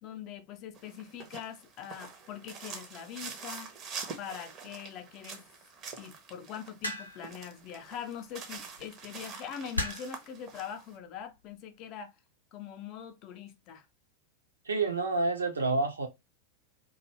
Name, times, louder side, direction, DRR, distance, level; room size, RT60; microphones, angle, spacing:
voice 1, 0.0-3.7 4.2-5.4 6.0-12.1 12.5-13.8, left 8 dB, 40° left, 0.5 m, -43 dB
sound 1, 0.7-10.9, right 5 dB, 30° right, 0.6 m, -45 dB
sound 2, 6.8-7.3 8.6-8.8 9.7-10.2 11.2-11.5, left 1 dB, 90° left, 0.6 m, -35 dB
voice 2, 14.7-16.1, right 3 dB, 75° right, 0.6 m, -28 dB
2.5 x 2.3 x 2.9 m
figure-of-eight pair, 90°, 0 cm